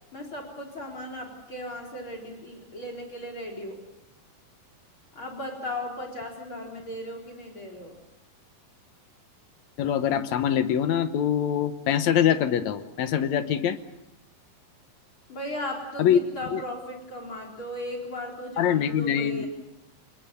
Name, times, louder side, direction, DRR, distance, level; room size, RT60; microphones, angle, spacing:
voice 1, 0.1-3.8 5.2-7.9 15.3-19.5, left 1 dB, 35° left, 4 dB, 4.5 m, -36 dB
voice 2, 9.8-13.8 16.0-16.2 16.5-16.6 18.6-19.5, left 9 dB, 65° left, 11 dB, 2.1 m, -24 dB
27.5 x 20.5 x 7.0 m, 0.90 s
omnidirectional pair, 3.9 m